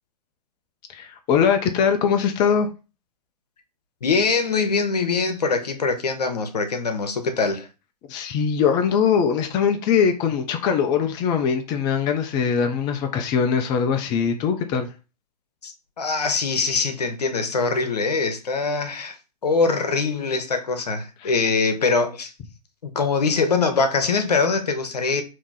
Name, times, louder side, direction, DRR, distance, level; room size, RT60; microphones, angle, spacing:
voice 1, 0.9-2.7 8.1-14.9 21.2-21.3, left 7 dB, 20° left, 0.4 m, -21 dB
voice 2, 4.0-7.7 15.6-19.2 19.4-22.3 22.8-25.2, left 4 dB, 70° left, 0.8 m, -23 dB
3.5 x 2.8 x 3.8 m
figure-of-eight pair, 115°, 21 cm